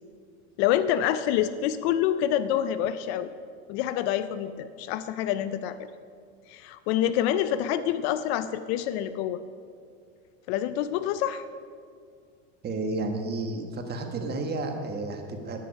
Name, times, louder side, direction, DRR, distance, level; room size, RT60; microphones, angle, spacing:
voice 1, 0.6-3.3 3.7-5.9 6.5-9.4 10.5-11.5, left 11 dB, 55° left, 13 dB, 0.5 m, -27 dB
voice 2, 12.6-15.6, right 2 dB, 25° right, 5 dB, 1.3 m, -31 dB
10.0 x 9.5 x 5.3 m, 2.2 s
supercardioid pair, 120°, 39 cm